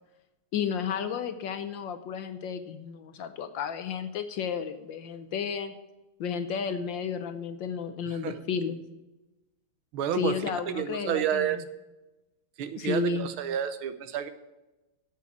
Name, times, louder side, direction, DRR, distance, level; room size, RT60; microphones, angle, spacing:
voice 1, 0.5-5.7 6.2-8.8 10.1-11.6 12.8-13.3, left 6 dB, 65° left, 9 dB, 1.3 m, -32 dB
voice 2, 9.9-11.6 12.6-14.3, right 10 dB, 75° right, 11 dB, 1.6 m, -30 dB
8.5 x 7.5 x 8.4 m, 1.0 s
omnidirectional pair, 2.4 m